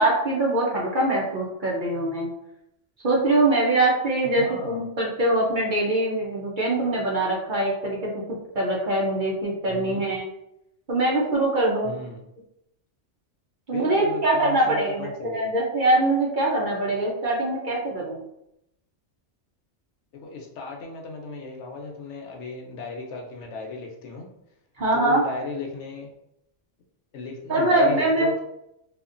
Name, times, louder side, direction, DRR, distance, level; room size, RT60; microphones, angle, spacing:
voice 1, 0.0-2.3 3.0-8.1 8.5-10.3 10.9-12.0 13.7-18.2 24.8-25.2 27.5-28.3, right 2 dB, 50° right, -4 dB, 0.7 m, -23 dB
voice 2, 4.4-4.8 9.7-10.1 11.8-12.2 13.7-15.5 20.2-24.3 24.9-26.1 27.1-28.4, left 4 dB, 75° left, 1 dB, 0.9 m, -35 dB
2.8 x 2.4 x 2.5 m, 0.82 s
omnidirectional pair, 1.2 m